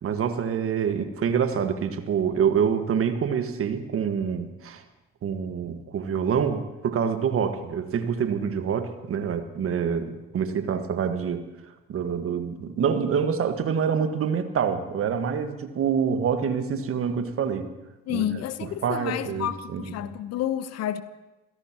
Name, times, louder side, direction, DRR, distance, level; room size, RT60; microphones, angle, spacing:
voice 1, 0.0-4.8 5.2-11.4 11.9-17.7 18.1-18.2 18.8-19.9, right 7 dB, 50° right, 1.6 m, -26 dB
voice 2, 18.1-21.0, left 11 dB, 60° left, 1.0 m, -30 dB
28.0 x 16.5 x 3.0 m
hypercardioid pair, 55°, 30 cm